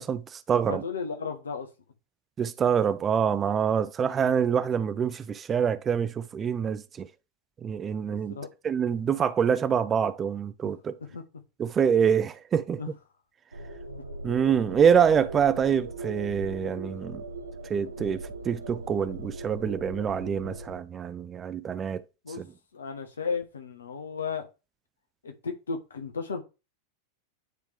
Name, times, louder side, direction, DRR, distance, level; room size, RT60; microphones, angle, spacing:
voice 1, 0.0-0.8 2.4-7.1 7.6-8.4 8.6-11.0 11.6-12.8 14.2-17.2 17.7-22.0 22.4-22.5, right 7 dB, 25° right, 0.5 m, -26 dB
voice 2, 0.7-1.7 2.8-2.9 8.1-8.5 11.1-11.2 12.0-12.2 12.8-12.9 14.3-14.4 22.2-22.4 22.7-24.5 25.2-26.4, left 5 dB, 70° left, 1.2 m, -34 dB
sound 1, 13.5-20.7, right 2 dB, 80° right, 0.9 m, -39 dB
9.5 x 3.5 x 3.5 m
figure-of-eight pair, 90°, 0 cm